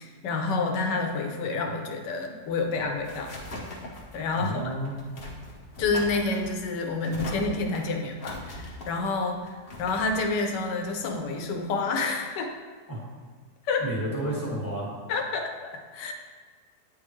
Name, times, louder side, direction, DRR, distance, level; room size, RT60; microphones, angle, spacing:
voice 1, 0.0-3.3 4.1-4.7 5.8-12.5 13.6-13.8 15.1-16.1, left 3 dB, 80° left, 3 dB, 1.4 m, -29 dB
sound 1, 2.4-11.7, left 1 dB, 40° left, 1.0 m, -41 dB
voice 2, 4.4-5.0 12.9-13.0 13.8-14.9, right 1 dB, 10° left, -7 dB, 1.7 m, -31 dB
9.3 x 3.6 x 3.2 m, 1.5 s
omnidirectional pair, 1.8 m